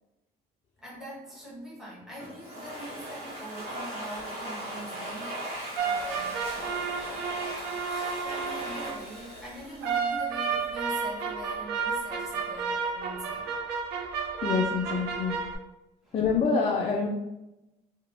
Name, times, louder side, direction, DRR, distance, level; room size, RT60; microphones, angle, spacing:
voice 1, 0.8-6.4 7.8-13.6 16.0-16.1, equal, 5° right, -7 dB, 0.9 m, -43 dB
Domestic sounds home sounds, 2.2-10.6, right 1 dB, 45° right, 1.0 m, -39 dB
sound 1, 5.8-9.1 9.8-15.6, right 5 dB, 80° right, 0.4 m, -32 dB
voice 2, 14.4-15.4 16.1-17.1, left 5 dB, 35° left, 0 dB, 0.4 m, -26 dB
3.0 x 2.0 x 2.5 m, 0.90 s
cardioid pair, 110°, 17 cm